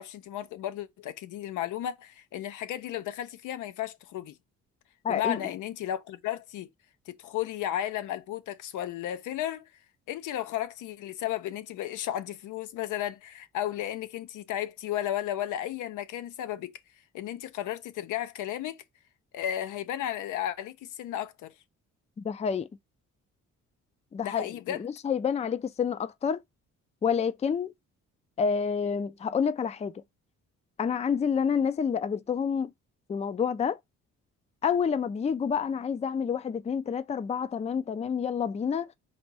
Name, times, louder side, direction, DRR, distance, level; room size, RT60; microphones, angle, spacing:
voice 1, 0.0-4.3 5.1-6.7 7.1-9.7 10.1-16.8 17.1-18.8 19.3-21.5 24.2-24.8, left 11 dB, 80° left, 0.6 m, -34 dB
voice 2, 5.0-5.4 22.2-22.7 24.1-26.4 27.0-27.7 28.4-29.9 30.8-32.7 33.1-33.8 34.6-38.9, left 6 dB, 20° left, 0.4 m, -28 dB
4.2 x 2.6 x 4.6 m
cardioid pair, 90°, 30 cm